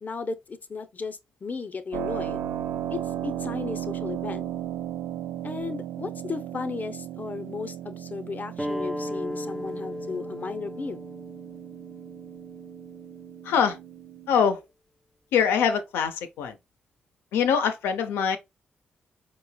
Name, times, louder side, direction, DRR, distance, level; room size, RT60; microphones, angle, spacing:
voice 1, 0.0-2.4 2.9-4.5 5.4-11.0, left 4 dB, 50° left, 0.7 m, -35 dB
Keyboard (musical), 1.9-14.4, right 11 dB, 80° right, 0.3 m, -36 dB
sound 1, 8.6-13.7, left 1 dB, 5° right, 0.7 m, -37 dB
voice 2, 13.4-13.8 14.3-14.6 15.3-16.5 17.3-18.4, left 7 dB, 90° left, 0.6 m, -23 dB
4.6 x 3.1 x 2.2 m
supercardioid pair, 50°, 4 cm